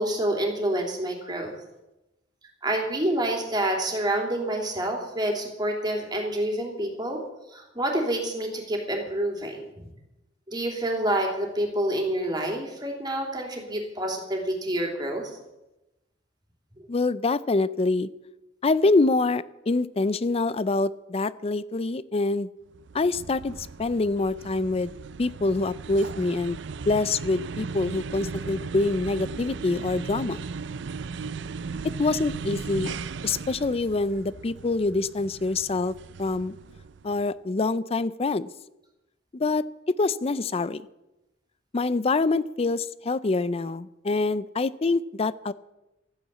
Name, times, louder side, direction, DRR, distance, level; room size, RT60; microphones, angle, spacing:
voice 1, 0.0-1.5 2.6-7.2 7.5-9.8 10.5-15.4, right 1 dB, 20° right, 1 dB, 3.2 m, -28 dB
voice 2, 16.9-18.1 18.6-22.5 22.9-24.9 25.2-26.6 26.9-30.4 32.0-32.9 33.2-36.5 37.0-38.5 39.3-40.8 41.7-45.5, left 3 dB, 30° left, 18 dB, 0.4 m, -25 dB
sound 1, 22.7-37.2, right 5 dB, 65° right, 0.5 m, -37 dB
13.5 x 9.7 x 8.3 m, 0.96 s
head